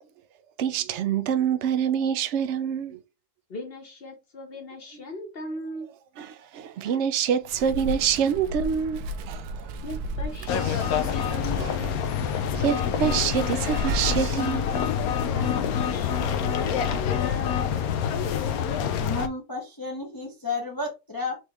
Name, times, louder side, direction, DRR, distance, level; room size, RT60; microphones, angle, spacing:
voice 1, 0.6-3.0 6.2-9.7 10.6-10.8 11.6-11.7 12.5-14.7, right 8 dB, 60° right, 0.8 m, -26 dB
voice 2, 3.5-5.9 9.8-12.0 15.3-17.8, left 2 dB, 45° left, 1.0 m, -39 dB
Wind, 7.4-15.2, right 1 dB, 85° right, 1.2 m, -34 dB
sound 1, 10.5-19.3, left 8 dB, 75° left, 1.0 m, -26 dB
voice 3, 19.0-21.4, left 3 dB, 20° left, 0.7 m, -32 dB
4.5 x 3.2 x 3.4 m
omnidirectional pair, 1.6 m